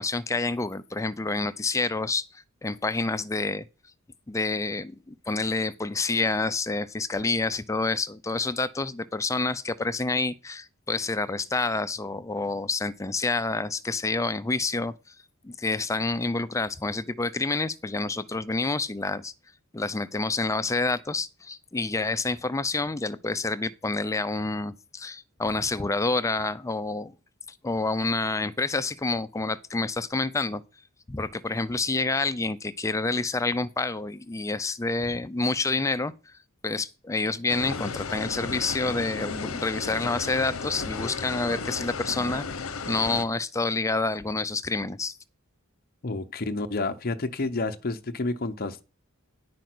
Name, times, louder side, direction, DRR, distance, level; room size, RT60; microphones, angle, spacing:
voice 1, 0.0-2.2 2.6-3.7 4.3-15.1 15.4-19.3 19.7-27.1 27.6-30.6 31.1-36.1 36.6-42.4 42.9-45.2, left 3 dB, 15° left, 0.4 m, -28 dB
sound 1, 37.5-43.2, left 4 dB, 75° left, 0.9 m, -34 dB
voice 2, 46.0-48.8, left 3 dB, 45° left, 0.7 m, -30 dB
10.0 x 5.1 x 6.1 m
head